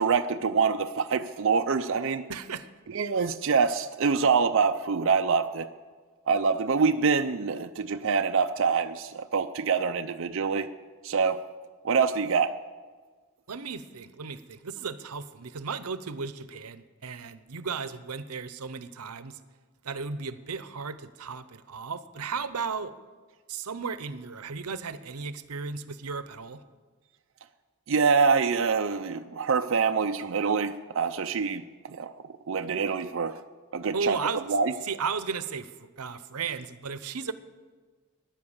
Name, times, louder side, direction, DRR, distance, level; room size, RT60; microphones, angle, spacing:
voice 1, 0.0-2.2 2.9-5.7 6.3-10.7 11.0-11.4 11.8-12.5 27.9-32.1 32.5-33.4 33.7-34.2 34.5-34.7, right 5 dB, 60° right, 7 dB, 0.5 m, -25 dB
voice 2, 2.3-2.7 13.5-19.4 19.8-22.9 23.5-26.6 33.9-34.4 34.8-37.3, right 5 dB, 90° right, 13 dB, 0.8 m, -35 dB
16.0 x 10.5 x 7.2 m, 1.5 s
head